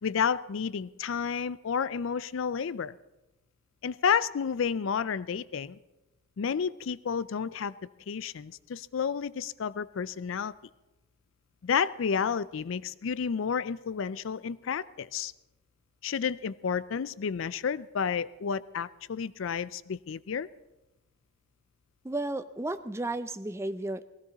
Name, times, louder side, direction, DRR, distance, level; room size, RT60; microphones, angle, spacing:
voice 1, 0.0-2.9 3.8-5.8 6.4-7.7 8.1-10.5 11.6-15.3 16.0-20.5, left 6 dB, 65° left, 18 dB, 0.4 m, -31 dB
voice 2, 22.0-24.0, right 2 dB, 15° right, 10 dB, 0.4 m, -33 dB
18.5 x 16.0 x 4.0 m, 1.0 s
head